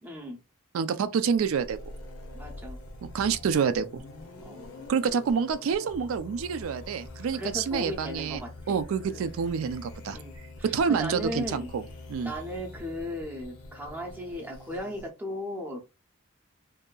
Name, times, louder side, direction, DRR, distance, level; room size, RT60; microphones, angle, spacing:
voice 1, 0.0-0.4 2.3-2.8 4.4-4.6 7.3-8.8 9.0-9.3 10.1-10.3 10.6-11.7 12.2-15.8, left 1 dB, 10° right, 0.6 m, -36 dB
voice 2, 0.7-1.8 3.1-4.0 4.9-8.4 8.7-10.2 10.7-11.8 12.1-12.3, right 6 dB, 70° right, 0.3 m, -27 dB
sound 1, 1.4-15.1, left 2 dB, 75° left, 0.6 m, -45 dB
2.7 x 2.4 x 2.2 m
head